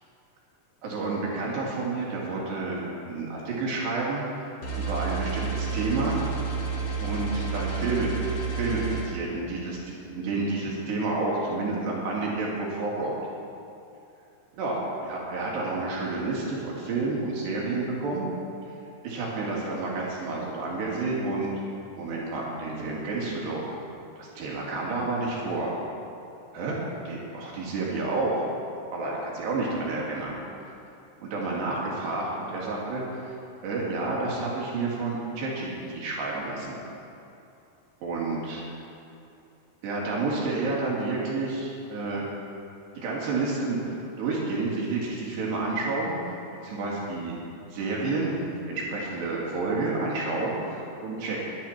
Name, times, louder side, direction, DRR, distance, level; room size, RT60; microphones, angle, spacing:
voice 1, 0.8-4.2 4.8-6.2 7.0-13.2 14.6-18.3 19.0-21.5 22.0-23.6 24.2-25.7 26.5-26.8 27.1-28.4 28.9-30.4 31.3-33.0 33.3-33.4 33.6-36.8 38.0-38.7 39.8-42.2 43.0-46.2 46.6-47.4 47.7-51.4, right 3 dB, 90° right, -4 dB, 4.8 m, -30 dB
sound 1, 4.6-9.0, right 5 dB, 50° left, 3.6 m, -30 dB
22.0 x 11.0 x 4.4 m, 2.6 s
omnidirectional pair, 4.7 m